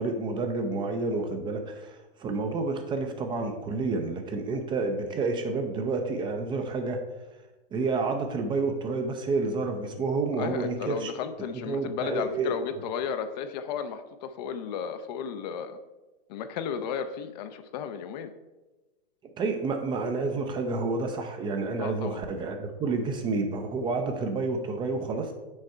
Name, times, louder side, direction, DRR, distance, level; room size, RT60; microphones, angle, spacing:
voice 1, 0.0-7.0 7.7-11.1 11.7-12.6 19.4-25.3, right 3 dB, 15° right, 5 dB, 0.5 m, -29 dB
voice 2, 10.3-15.8 16.3-18.3 21.7-22.2, left 7 dB, 45° left, 10 dB, 0.6 m, -34 dB
6.4 x 4.3 x 4.3 m, 1.1 s
hypercardioid pair, 130°, 30 cm